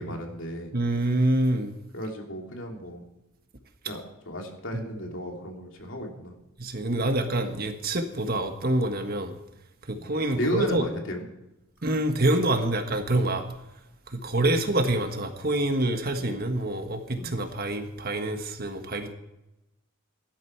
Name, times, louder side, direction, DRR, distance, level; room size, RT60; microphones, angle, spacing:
voice 1, 0.0-0.7 1.9-3.0 3.9-6.3 9.9-10.1 10.4-11.3 16.2-16.3 17.2-17.3, equal, 65° left, 1 dB, 3.0 m, -34 dB
voice 2, 0.7-1.7 4.7-4.9 6.6-9.3 9.9-10.8 11.8-13.4 14.1-19.1, right 1 dB, 45° right, 6 dB, 1.5 m, -26 dB
17.0 x 12.0 x 4.6 m, 0.94 s
head